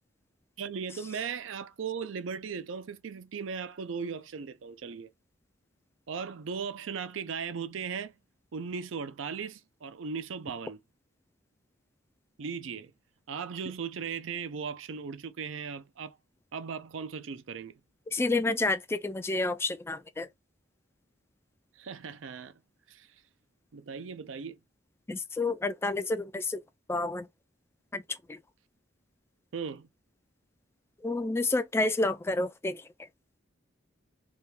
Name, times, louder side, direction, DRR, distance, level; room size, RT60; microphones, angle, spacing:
voice 1, 0.6-5.1 6.1-8.1 8.5-10.8 12.4-12.9 13.3-16.2 16.5-17.7 21.8-22.6 22.9-23.1 23.7-24.6 29.5-29.9, right 6 dB, 70° right, 0.5 m, -37 dB
voice 2, 18.1-20.3 25.1-26.6 26.9-27.3 27.9-28.4 31.0-32.8, left 2 dB, 15° left, 0.3 m, -29 dB
3.5 x 2.3 x 4.3 m
head